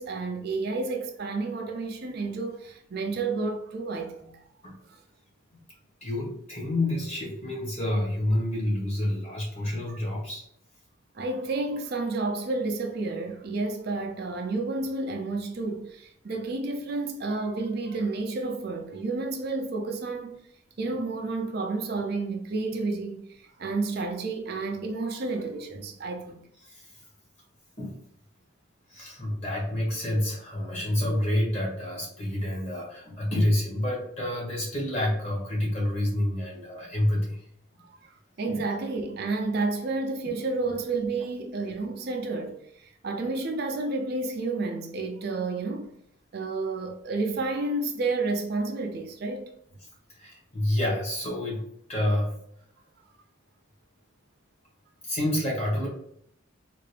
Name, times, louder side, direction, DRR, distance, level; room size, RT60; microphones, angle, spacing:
voice 1, 0.0-4.4 4.9-5.0 9.9-10.0 11.1-20.4 20.8-26.4 37.8-45.9 46.3-49.5, right 3 dB, 50° right, 0.4 m, -31 dB
voice 2, 6.0-10.4 26.6-26.9 27.8-27.9 28.9-37.4 38.5-38.6 50.2-51.6 51.9-52.3 55.0-55.9, left 1 dB, 30° left, 1.4 m, -28 dB
3.7 x 2.5 x 3.2 m
head